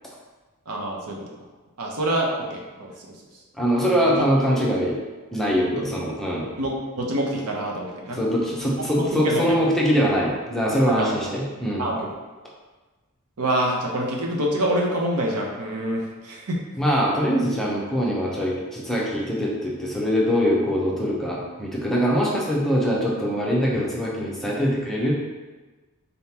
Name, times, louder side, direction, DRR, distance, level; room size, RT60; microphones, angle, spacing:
voice 1, 0.7-1.3 1.8-2.9 4.0-4.2 5.8-5.9 6.6-8.2 8.8-9.6 11.0-11.1 11.8-12.1 13.4-16.6, right 1 dB, 85° right, -1 dB, 0.8 m, -26 dB
voice 2, 3.6-5.0 5.3-6.5 8.1-11.8 16.8-25.1, equal, ahead, -5 dB, 0.7 m, -23 dB
4.0 x 3.7 x 2.9 m, 1.3 s
head